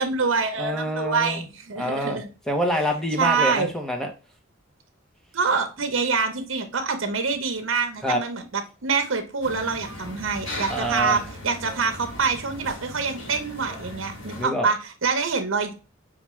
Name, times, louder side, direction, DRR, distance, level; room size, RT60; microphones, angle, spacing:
voice 1, 0.0-2.3 3.2-3.7 5.3-15.7, right 5 dB, 70° right, 6 dB, 0.9 m, -25 dB
voice 2, 0.6-1.5 1.8-2.2 2.5-4.1 8.0-8.2 10.7-11.2 14.4-14.7, equal, ahead, 2 dB, 0.8 m, -26 dB
sound 1, 9.4-14.4, left 1 dB, 75° left, 1.3 m, -38 dB
5.8 x 2.4 x 3.1 m, 0.32 s
head